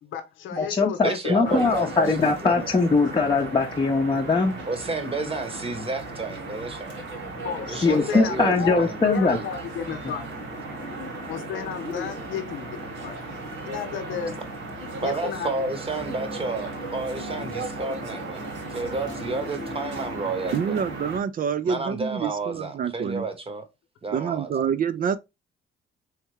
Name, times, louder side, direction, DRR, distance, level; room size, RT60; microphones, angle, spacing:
voice 1, 0.0-1.9 7.4-10.2 11.2-13.2 13.6-14.4 15.0-15.5, left 7 dB, 75° left, 0.7 m, -33 dB
voice 2, 0.5-4.6 7.8-9.4, left 3 dB, 25° left, 0.7 m, -21 dB
voice 3, 1.0-2.7 4.7-6.9 7.7-9.0 9.3-9.4 15.0-20.8 21.6-23.6 24.0-24.5, right 3 dB, 30° right, 0.9 m, -31 dB
sound 1, 1.4-21.2, right 2 dB, 75° right, 1.8 m, -36 dB
voice 4, 20.5-23.3 24.1-25.2, right 7 dB, 45° right, 0.4 m, -27 dB
3.5 x 3.2 x 3.1 m
cardioid pair, 90°, 20 cm